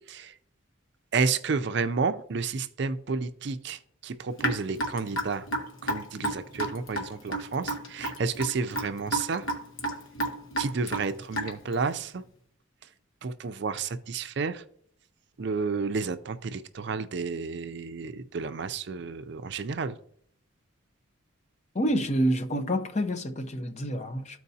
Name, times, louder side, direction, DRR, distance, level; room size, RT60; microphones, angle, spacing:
voice 1, 1.1-5.5 5.8-9.5 10.6-12.2 13.2-14.6 15.4-19.9, right 4 dB, 55° right, 0.4 m, -31 dB
Raindrop / Drip, 4.4-11.7, right 1 dB, 75° left, 1.3 m, -31 dB
voice 2, 21.7-24.4, equal, 35° left, 0.6 m, -28 dB
13.5 x 4.5 x 2.7 m
head